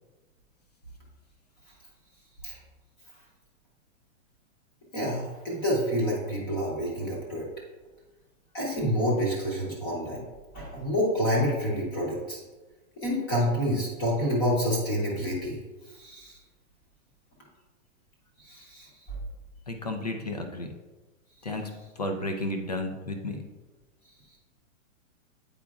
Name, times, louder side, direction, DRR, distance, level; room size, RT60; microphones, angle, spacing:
voice 1, 4.9-7.5 8.5-10.2 10.5-12.4 13.0-15.6 16.0-16.3 18.5-18.9, equal, 15° left, -4 dB, 0.8 m, -28 dB
voice 2, 19.7-20.7 21.4-21.7 22.0-23.4, left 1 dB, 35° left, 4 dB, 0.4 m, -32 dB
8.4 x 4.9 x 2.4 m, 1.2 s
hypercardioid pair, 175°, 40 cm